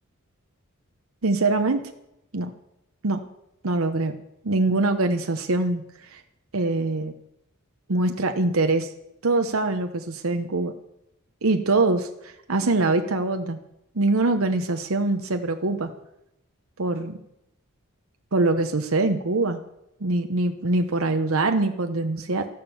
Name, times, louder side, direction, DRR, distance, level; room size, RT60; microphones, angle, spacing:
voice 1, 1.2-1.8 2.3-2.5 3.0-3.2 3.6-4.2 4.4-6.2 6.5-7.1 7.9-8.9 9.2-10.7 11.4-13.6 13.9-15.9 16.8-17.2 18.3-19.6 20.0-22.5, right 2 dB, 70° right, 6 dB, 1.0 m, -23 dB
13.5 x 11.5 x 7.1 m, 0.83 s
head